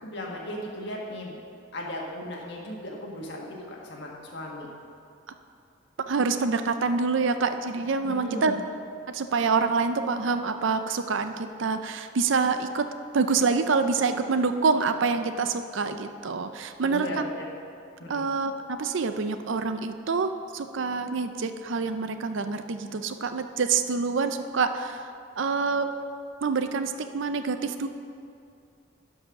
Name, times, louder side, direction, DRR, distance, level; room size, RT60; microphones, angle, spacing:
voice 1, 0.0-1.4 1.7-4.7 8.0-8.5 16.8-17.4 18.0-18.2, left 1 dB, 55° left, -2 dB, 1.6 m, -36 dB
voice 2, 6.1-8.5 9.1-12.9 13.1-17.2 18.1-25.9 26.4-27.9, right 4 dB, 65° right, 9 dB, 0.5 m, -26 dB
11.5 x 5.5 x 5.8 m, 2.5 s
head